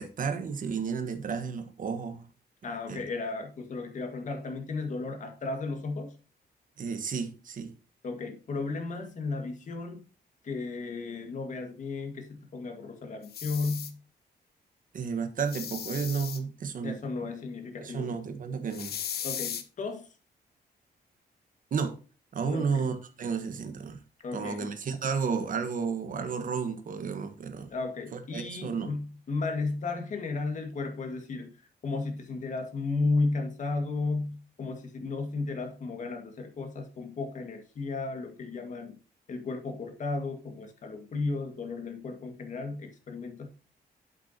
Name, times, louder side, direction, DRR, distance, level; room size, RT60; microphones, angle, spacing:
voice 1, 0.0-2.3 2.9-3.0 6.8-7.7 14.9-17.0 17.8-19.0 21.7-22.0 22.3-24.0 24.3-27.7 28.1-28.9, right 5 dB, 50° right, 1.4 m, -32 dB
voice 2, 2.6-6.1 8.0-10.0 10.4-14.0 16.8-18.1 19.2-20.1 22.4-22.8 24.2-24.7 27.7-31.5 31.8-39.0 39.3-43.5, left 3 dB, 45° left, 2.0 m, -34 dB
sound 1, 13.2-13.9 15.4-16.4 18.7-19.6, left 9 dB, 65° left, 1.0 m, -36 dB
8.2 x 8.1 x 2.9 m
wide cardioid pair, 140°, 17 cm